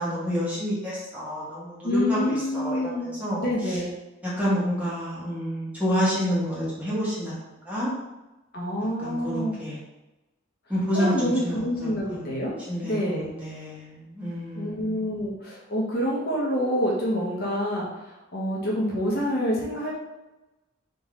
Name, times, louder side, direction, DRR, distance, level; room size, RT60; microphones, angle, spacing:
voice 1, 0.0-3.4 4.2-7.3 7.6-7.9 8.8-9.8 10.7-12.2 12.7-15.1, equal, 5° right, -9 dB, 1.4 m, -29 dB
voice 2, 1.8-3.1 3.4-3.9 8.5-9.6 10.9-12.5 12.8-13.3 14.6-19.9, equal, 50° left, -4 dB, 0.9 m, -27 dB
3.9 x 3.0 x 3.6 m, 1.0 s
head